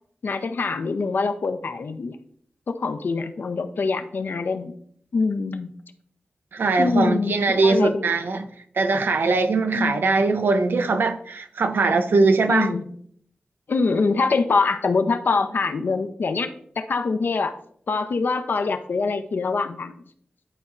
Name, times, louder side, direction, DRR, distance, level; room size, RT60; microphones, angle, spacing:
voice 1, 0.2-2.2 2.7-4.7 5.1-5.7 6.8-8.1 9.7-10.0 12.5-12.8 13.7-17.5 17.9-19.9, left 4 dB, 70° left, 8 dB, 0.6 m, -24 dB
voice 2, 6.5-8.5 8.8-12.7, right 3 dB, 85° right, 8 dB, 0.6 m, -21 dB
11.0 x 4.1 x 2.5 m, 0.64 s
wide cardioid pair, 95°, 4 cm